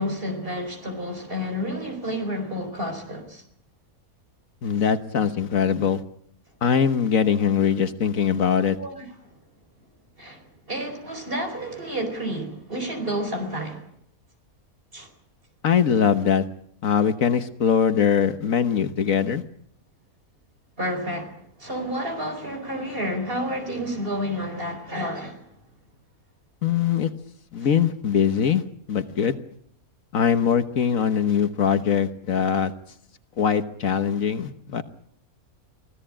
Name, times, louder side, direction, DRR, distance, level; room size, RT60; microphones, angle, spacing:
voice 1, 0.0-3.4 8.8-9.1 10.2-13.9 14.9-15.1 20.8-25.5, equal, 40° right, 5.0 m, -30 dB
voice 2, 4.6-6.0 6.6-8.8 15.6-16.4 16.8-19.4 26.6-27.1 27.5-29.4 30.1-32.7 33.4-34.8, left 7 dB, 65° left, 1.5 m, -22 dB
25.0 x 17.0 x 8.8 m
omnidirectional pair, 1.5 m